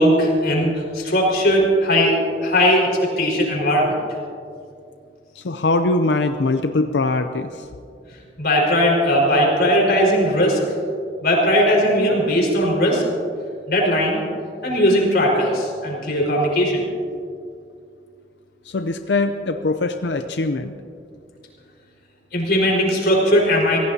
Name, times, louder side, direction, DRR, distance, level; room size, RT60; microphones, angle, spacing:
voice 1, 0.0-2.9 3.2-3.9 8.4-10.6 11.2-13.0 13.7-14.2 14.6-16.8 22.3-23.8, equal, 60° left, -2 dB, 4.8 m, -18 dB
voice 2, 5.4-7.6 18.7-20.7, left 2 dB, 80° left, 7 dB, 0.6 m, -22 dB
25.5 x 16.5 x 2.8 m, 2.4 s
head